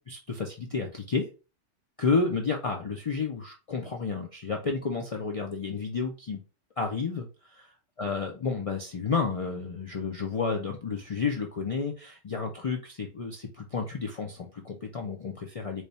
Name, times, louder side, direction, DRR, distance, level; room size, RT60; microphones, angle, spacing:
voice 1, 0.1-1.3 2.0-6.4 6.8-7.5 8.0-15.8, left 4 dB, 50° left, 1 dB, 0.4 m, -31 dB
3.2 x 2.3 x 4.0 m, 0.32 s
omnidirectional pair, 1.2 m